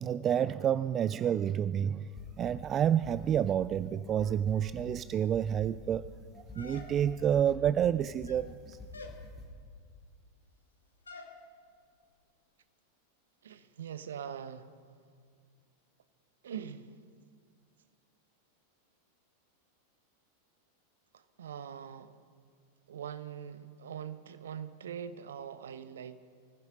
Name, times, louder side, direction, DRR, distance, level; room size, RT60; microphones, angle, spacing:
voice 1, 0.0-2.1 2.4-6.0 6.6-8.8, right 9 dB, 30° right, 15 dB, 0.3 m, -29 dB
sound 1, 2.2-9.5, left 1 dB, 10° left, 5.2 m, -47 dB
sound 2, 6.5-7.3 8.1-8.5 8.9-9.2 11.1-11.4, left 3 dB, 75° left, 1.6 m, -48 dB
voice 2, 13.4-14.7 16.4-16.9 21.1-22.1 22.9-26.3, right 8 dB, 65° right, 12 dB, 0.9 m, -42 dB
24.5 x 15.0 x 3.9 m, 2.1 s
figure-of-eight pair, 90°, 0 cm